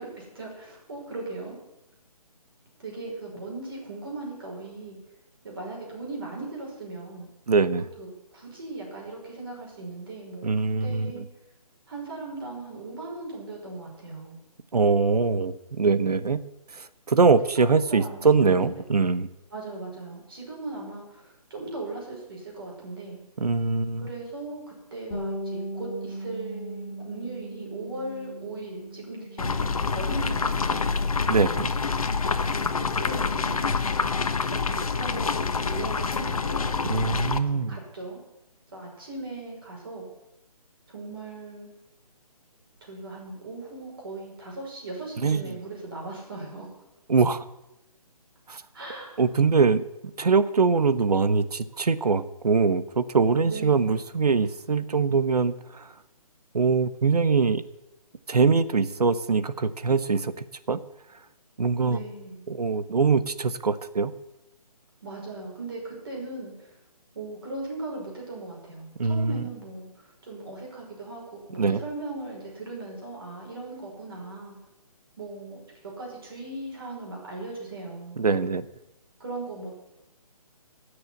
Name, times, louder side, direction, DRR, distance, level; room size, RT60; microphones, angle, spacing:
voice 1, 0.0-1.6 2.8-5.0 5.4-7.3 8.0-10.5 10.8-11.2 11.9-14.4 17.4-18.7 19.5-23.2 24.0-31.0 32.8-33.6 34.5-36.7 37.5-38.2 38.7-40.1 40.9-41.7 42.8-46.7 48.7-49.2 53.4-54.0 61.9-62.4 65.0-66.8 67.1-74.6 75.2-75.6 76.0-78.2 79.2-79.7, right 2 dB, 35° right, -2 dB, 5.7 m, -38 dB
voice 2, 7.5-7.8 10.4-11.2 14.7-16.4 16.7-19.3 23.4-24.1 31.3-31.7 36.9-37.8 45.2-45.5 47.1-47.4 48.5-48.6 49.2-55.9 56.5-57.6 58.3-60.8 61.6-62.0 62.5-64.1 69.0-69.4 71.6-71.8 78.2-78.7, right 4 dB, 75° right, 13 dB, 1.2 m, -23 dB
Bass guitar, 25.1-29.8 30.1-31.4, right 1 dB, 30° left, 2.7 m, -38 dB
sound 1, 29.4-37.4, left 4 dB, 65° left, 1.2 m, -27 dB
17.5 x 6.8 x 9.6 m, 0.92 s
hypercardioid pair, 180°, 20 cm